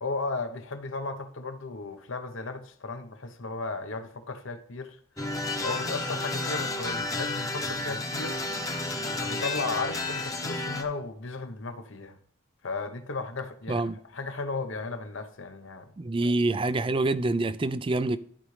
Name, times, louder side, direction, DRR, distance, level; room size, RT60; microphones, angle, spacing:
voice 1, 0.0-5.0 5.6-8.4 9.2-12.2 12.6-15.9, left 3 dB, 65° left, 1.0 m, -35 dB
sound 1, 5.2-10.8, left 2 dB, 15° left, 0.9 m, -31 dB
voice 2, 16.0-18.2, right 2 dB, 25° right, 0.3 m, -26 dB
12.5 x 5.2 x 3.3 m
head